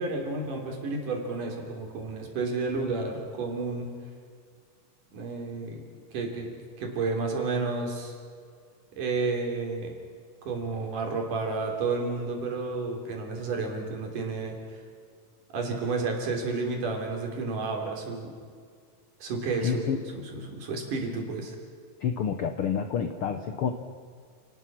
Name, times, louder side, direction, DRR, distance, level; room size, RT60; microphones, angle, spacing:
voice 1, 0.0-3.9 5.1-5.8 6.1-8.1 9.0-9.9 10.4-14.6 15.5-18.3 19.2-21.6, right 3 dB, 70° right, 2 dB, 4.9 m, -31 dB
voice 2, 19.6-20.0 22.0-23.7, left 7 dB, 70° left, 7 dB, 1.3 m, -28 dB
30.0 x 19.5 x 6.1 m, 2.1 s
omnidirectional pair, 3.8 m